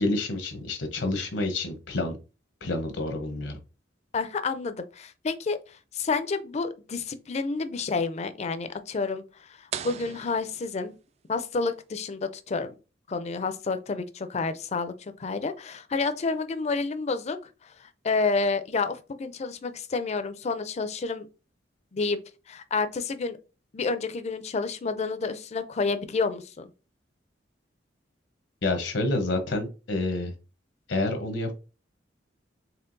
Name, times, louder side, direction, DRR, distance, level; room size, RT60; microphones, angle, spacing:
voice 1, 0.0-2.2 2.6-3.6 28.6-30.3 30.9-31.5, left 2 dB, 75° left, 0.8 m, -28 dB
voice 2, 4.1-10.9 11.3-12.7 13.1-21.3 21.9-22.2 22.5-23.4 23.7-26.7, left 4 dB, 35° left, 0.4 m, -29 dB
sound 1, 9.7-11.4, right 8 dB, 35° right, 0.3 m, -39 dB
4.4 x 3.4 x 2.6 m
head